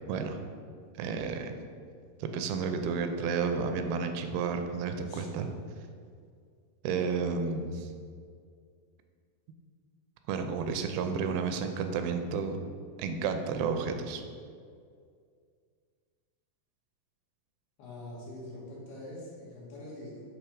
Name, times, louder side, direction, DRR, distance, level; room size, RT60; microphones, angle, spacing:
voice 1, 0.1-0.4 1.0-1.5 2.2-5.5 6.8-7.9 10.3-12.6 13.0-14.2, right 5 dB, 90° right, 6 dB, 2.4 m, -31 dB
voice 2, 17.8-20.2, left 1 dB, 90° left, -6 dB, 3.4 m, -44 dB
7.5 x 3.0 x 4.9 m, 2.2 s
omnidirectional pair, 4.2 m